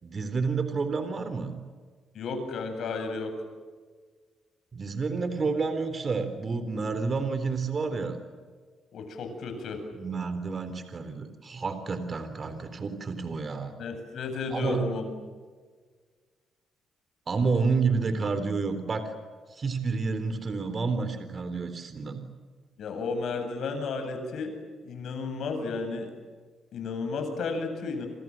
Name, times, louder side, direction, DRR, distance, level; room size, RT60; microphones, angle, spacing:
voice 1, 0.0-1.6 4.7-8.2 9.9-13.7 14.5-14.8 17.3-19.1 19.5-22.2, right 4 dB, 40° right, 10 dB, 3.7 m, -29 dB
voice 2, 2.1-3.3 8.9-9.8 13.8-15.1 22.8-24.6 24.8-26.1 26.7-28.1, left 4 dB, 70° left, 6 dB, 8.0 m, -33 dB
28.0 x 27.5 x 7.7 m, 1.5 s
cardioid pair, 90°, 0 cm